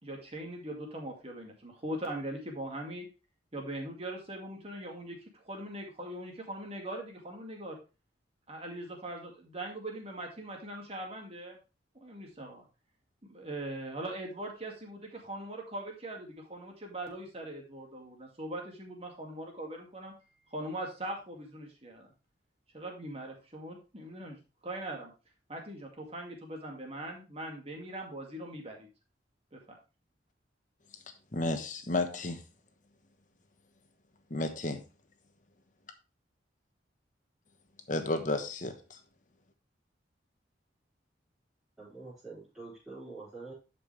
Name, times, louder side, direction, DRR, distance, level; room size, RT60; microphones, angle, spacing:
voice 1, 0.0-3.1 3.5-7.8 8.5-11.6 11.9-12.6 13.2-20.1 20.5-22.1 22.7-25.1 25.5-28.9 29.5-29.6, right 1 dB, 35° right, 2.1 m, -41 dB
voice 2, 31.3-32.4 34.3-34.8 37.9-39.0, left 2 dB, 45° left, 1.2 m, -32 dB
voice 3, 41.8-43.5, right 3 dB, 5° right, 4.0 m, -46 dB
11.0 x 5.3 x 3.3 m
head